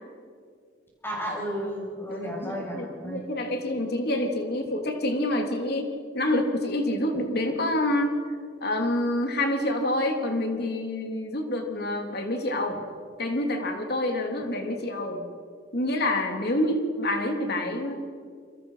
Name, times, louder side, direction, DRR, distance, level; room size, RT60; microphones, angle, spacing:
voice 1, 1.0-3.2, equal, 10° left, -3 dB, 7.7 m, -33 dB
voice 2, 2.1-5.9 6.1-8.1 8.6-12.8 13.2-15.2 15.7-18.0, left 1 dB, 55° left, 3 dB, 3.5 m, -27 dB
29.0 x 25.5 x 5.9 m, 2.1 s
head